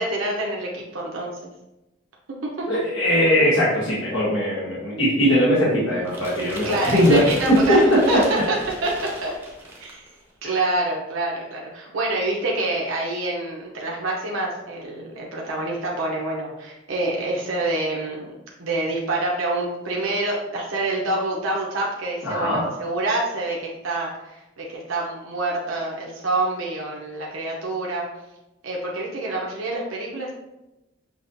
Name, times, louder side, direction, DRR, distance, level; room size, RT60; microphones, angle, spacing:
voice 1, 0.0-1.5 2.4-2.7 6.6-7.8 8.1-8.2 8.5-8.6 8.8-8.9 9.2-9.3 9.8-10.0 10.4-18.3 18.6-28.0 28.6-30.3, right 2 dB, 85° right, -3 dB, 0.8 m, -26 dB
voice 2, 2.7-7.2 22.2-22.6, equal, 70° left, -8 dB, 1.3 m, -20 dB
sound 1, 6.1-10.1, right 1 dB, 10° right, 0.7 m, -35 dB
6.1 x 2.9 x 2.7 m, 0.97 s
head